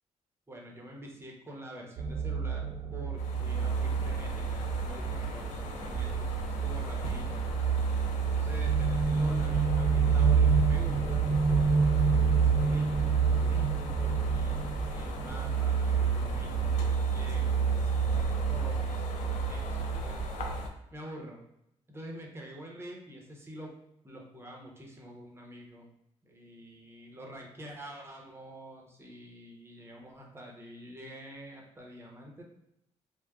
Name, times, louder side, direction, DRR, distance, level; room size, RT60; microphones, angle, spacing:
voice 1, 0.5-7.4 8.2-20.5 20.9-21.4 21.9-23.7 24.0-25.9 26.2-32.4, equal, 20° right, -1 dB, 0.8 m, -47 dB
sound 1, 2.0-20.6, right 6 dB, 55° right, 0.4 m, -28 dB
sound 2, 3.2-20.7, left 2 dB, 90° left, 0.4 m, -40 dB
3.4 x 2.2 x 2.3 m, 0.80 s
cardioid pair, 70°, 12 cm